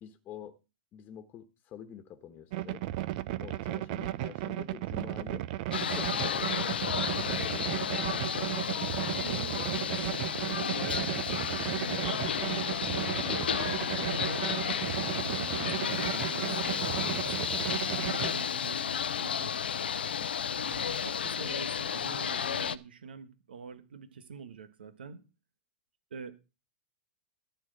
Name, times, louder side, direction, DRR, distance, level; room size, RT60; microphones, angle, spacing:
voice 1, 0.0-0.6 0.9-2.8 3.4-5.5 5.9-6.8 7.2-8.5 20.2-20.3, left 9 dB, 35° left, 1.3 m, -47 dB
sound 1, 2.5-18.4, right 15 dB, 55° right, 0.7 m, -35 dB
sound 2, 5.7-22.8, left 8 dB, 85° left, 0.6 m, -32 dB
voice 2, 9.1-9.7 10.6-13.2 13.8-14.5 15.0-17.5 17.9-19.5 20.6-25.2 26.1-26.3, right 5 dB, 85° right, 1.4 m, -44 dB
13.5 x 4.5 x 7.8 m
hypercardioid pair, 110°, 5 cm